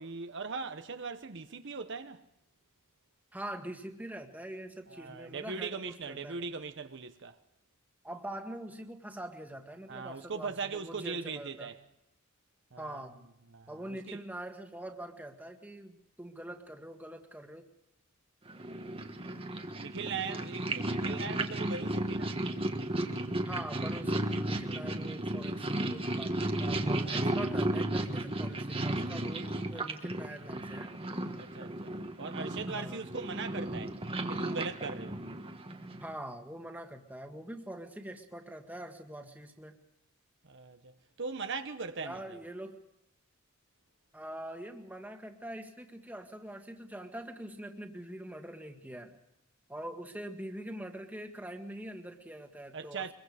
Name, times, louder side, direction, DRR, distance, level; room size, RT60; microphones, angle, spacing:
voice 1, 0.0-2.2 4.9-7.4 9.9-11.8 12.7-13.0 13.5-14.2 19.8-22.4 27.0-27.3 29.4-29.7 31.4-33.9 34.3-35.2 40.4-42.4 52.7-53.1, right 4 dB, 55° right, 0.9 m, -40 dB
voice 2, 3.3-6.4 8.0-11.7 12.8-13.2 13.7-17.7 21.0-21.3 23.4-30.9 32.7-33.0 36.0-39.8 42.0-42.8 44.1-49.1 49.7-53.1, right 1 dB, 5° right, 1.8 m, -44 dB
Purr, 18.5-36.1, right 1 dB, 25° right, 1.4 m, -34 dB
24.0 x 22.5 x 5.0 m
head